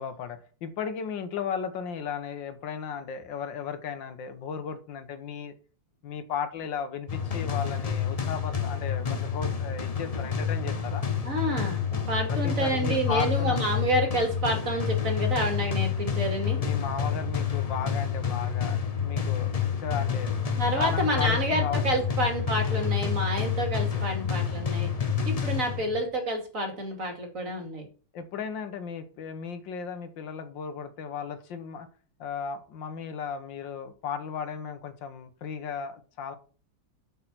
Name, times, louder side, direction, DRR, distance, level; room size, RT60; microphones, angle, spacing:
voice 1, 0.0-5.5 6.0-11.1 12.3-13.7 16.6-20.3 20.8-22.1 28.1-31.9 32.2-36.3, left 7 dB, 80° left, 10 dB, 1.8 m, -35 dB
sound 1, 7.1-26.1, left 7 dB, 50° left, 0.4 m, -29 dB
voice 2, 11.2-16.6 20.6-24.9 25.3-27.9, right 1 dB, 45° right, 3 dB, 2.8 m, -29 dB
8.3 x 5.6 x 6.0 m, 0.38 s
omnidirectional pair, 2.0 m